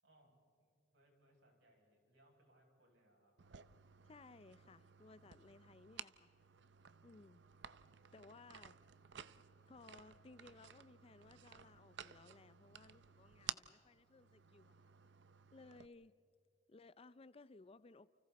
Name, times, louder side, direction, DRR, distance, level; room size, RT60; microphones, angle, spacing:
voice 1, 0.0-3.3, right 1 dB, 80° right, 7.2 m, -71 dB
sound 1, 3.4-15.9, right 9 dB, 65° right, 0.7 m, -55 dB
voice 2, 4.0-6.3 7.0-7.4 8.1-8.8 9.7-14.8 15.5-16.1 16.7-18.1, left 3 dB, 30° left, 0.5 m, -60 dB
29.5 x 29.5 x 4.1 m
head